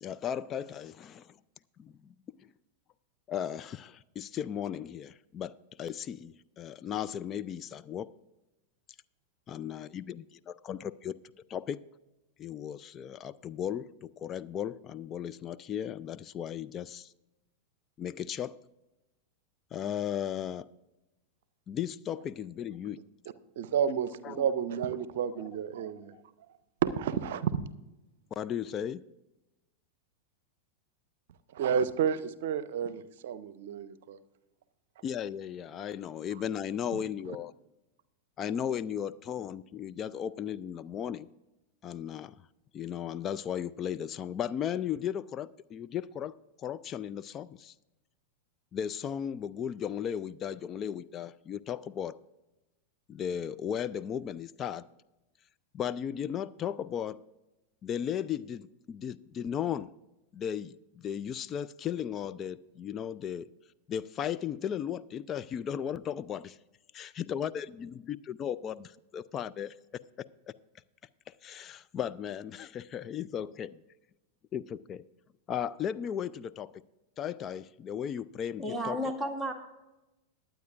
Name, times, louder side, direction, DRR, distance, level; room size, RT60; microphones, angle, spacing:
voice 1, 0.0-1.3 1.8-2.1 3.3-8.1 9.5-11.1 11.5-11.8 12.4-17.1 18.0-18.6 19.7-20.7 21.7-23.0 24.2-24.5 25.4-25.5 25.8-25.9 28.4-29.0 35.0-37.5 38.4-41.3 41.8-42.4 42.7-46.3 46.6-47.7 48.7-52.2 53.1-54.8 55.7-57.2 57.8-59.9 60.3-63.5 63.9-66.6 66.9-69.7 71.4-73.8 74.5-75.0 75.5-76.8 77.2-79.0, left 9 dB, 30° left, 14 dB, 0.4 m, -36 dB
voice 2, 23.6-26.1 26.8-27.5 31.5-34.2, right 8 dB, 55° right, 15 dB, 0.7 m, -30 dB
voice 3, 78.6-79.5, equal, ahead, 0 dB, 1.7 m, -32 dB
21.0 x 9.1 x 2.5 m, 0.99 s
figure-of-eight pair, 90°, 0 cm